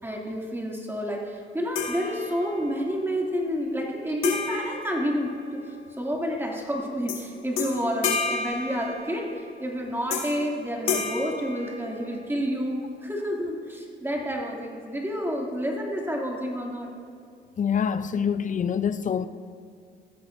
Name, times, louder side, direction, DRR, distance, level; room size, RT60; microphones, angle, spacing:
voice 1, 0.0-16.9, equal, 10° right, 2.4 m, -29 dB
sound 1, 1.7-2.7 4.2-5.8 7.1-7.3 7.6-9.4 10.1-10.5 10.9-12.3, left 5 dB, 85° left, 1.8 m, -31 dB
voice 2, 17.6-19.3, left 7 dB, 40° left, 0.6 m, -25 dB
17.5 x 14.0 x 2.6 m
cardioid pair, 90°, 20 cm